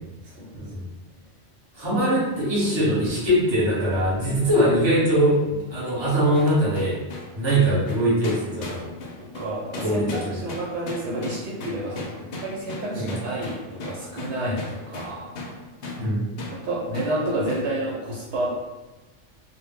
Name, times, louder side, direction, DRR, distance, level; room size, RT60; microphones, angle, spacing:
voice 1, 0.2-0.6 9.2-10.0 10.3-15.3 16.5-18.6, right 1 dB, 70° right, -4 dB, 0.9 m, -30 dB
voice 2, 1.7-7.0 7.3-8.8 9.8-10.4 12.9-13.1 16.0-16.3, equal, 25° right, -7 dB, 0.9 m, -22 dB
sound 1, 6.3-15.6 15.8-16.0 16.4-16.6 16.9-17.1 17.5-17.7, left 2 dB, 65° left, 0.7 m, -36 dB
2.1 x 2.1 x 3.5 m, 1.1 s
omnidirectional pair, 1.2 m